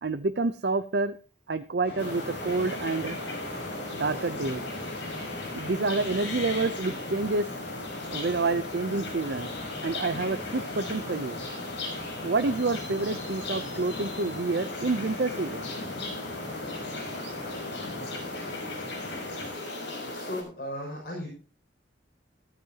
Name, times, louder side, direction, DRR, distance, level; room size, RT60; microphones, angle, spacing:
voice 1, 0.0-1.1 1.5-3.2 4.0-4.6 5.5-7.5 8.1-9.5 9.8-11.6 12.2-15.7 17.2-17.3, right 3 dB, 60° right, 11 dB, 0.6 m, -28 dB
sound 1, 1.8-19.5, left 1 dB, 35° left, 8.0 m, -41 dB
sound 2, 2.0-20.4, left 2 dB, 75° left, 6.2 m, -37 dB
voice 2, 20.1-21.3, left 1 dB, 50° left, -1 dB, 6.4 m, -36 dB
15.5 x 14.0 x 2.9 m, 0.39 s
head